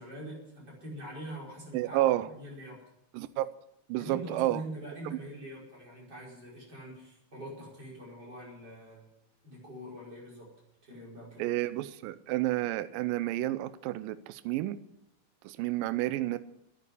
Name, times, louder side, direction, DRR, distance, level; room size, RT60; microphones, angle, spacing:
voice 1, 0.0-2.8 4.0-9.1 9.4-10.5 10.8-11.4, right 1 dB, 25° right, 5.7 m, -44 dB
voice 2, 1.7-2.3 3.1-3.5 3.9-4.6 11.4-14.8 15.4-16.4, right 15 dB, 85° right, 1.9 m, -30 dB
11.0 x 10.0 x 9.9 m
omnidirectional pair, 4.8 m